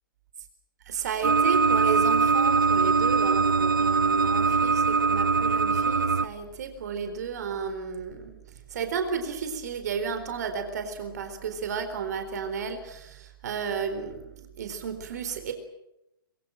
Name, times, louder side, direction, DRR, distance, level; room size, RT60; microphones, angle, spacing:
voice 1, 0.9-8.3 8.7-15.5, right 6 dB, 50° right, 8 dB, 4.1 m, -33 dB
sound 1, 1.2-6.3, right 4 dB, 70° right, 1.2 m, -22 dB
25.0 x 23.5 x 7.7 m, 0.85 s
figure-of-eight pair, 125°, 12 cm